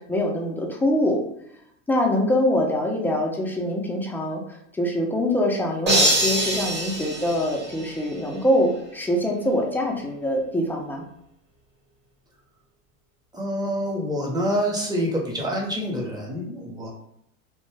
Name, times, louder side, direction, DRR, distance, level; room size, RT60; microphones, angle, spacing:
voice 1, 0.1-1.2 1.9-4.4 4.7-11.0, left 1 dB, 5° left, 0 dB, 0.3 m, -24 dB
sound 1, 5.9-8.2, right 1 dB, 25° right, 1.1 m, -24 dB
voice 2, 13.3-16.9, equal, 10° right, -1 dB, 0.7 m, -27 dB
2.5 x 2.2 x 3.1 m, 0.73 s
hypercardioid pair, 100°, 39 cm